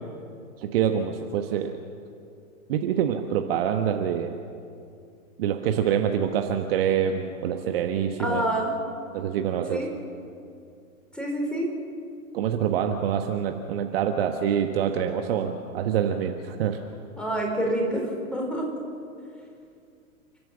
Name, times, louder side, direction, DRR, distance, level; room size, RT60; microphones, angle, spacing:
voice 1, 0.6-1.8 2.7-4.4 5.4-8.4 9.1-9.8 12.3-16.8, right 8 dB, 40° right, 5 dB, 1.3 m, -26 dB
voice 2, 8.2-8.8 9.7-9.9 11.1-11.7 17.2-18.7, right 1 dB, ahead, 0 dB, 4.4 m, -27 dB
29.5 x 13.0 x 7.3 m, 2.4 s
figure-of-eight pair, 110°, 43 cm